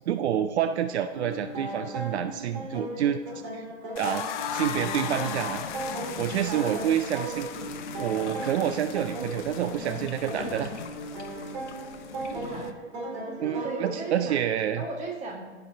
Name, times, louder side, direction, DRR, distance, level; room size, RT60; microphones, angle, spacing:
voice 1, 0.1-3.2 3.5-3.6 4.0-5.6 6.2-7.5 8.0-10.7 13.4-14.8, right 10 dB, 70° right, 10 dB, 0.5 m, -28 dB
sound 1, 1.1-13.9, right 2 dB, 45° right, 2.6 m, -37 dB
sound 2, 4.0-12.7, left 9 dB, 45° left, 0.6 m, -38 dB
sound 3, 4.5-12.7, left 5 dB, 90° left, 0.9 m, -42 dB
voice 2, 6.5-6.8 12.3-12.7 13.3-14.4 14.8-15.4, right 3 dB, 20° right, 0 dB, 1.5 m, -36 dB
14.5 x 5.8 x 2.7 m, 1.5 s
hypercardioid pair, 130°, 34 cm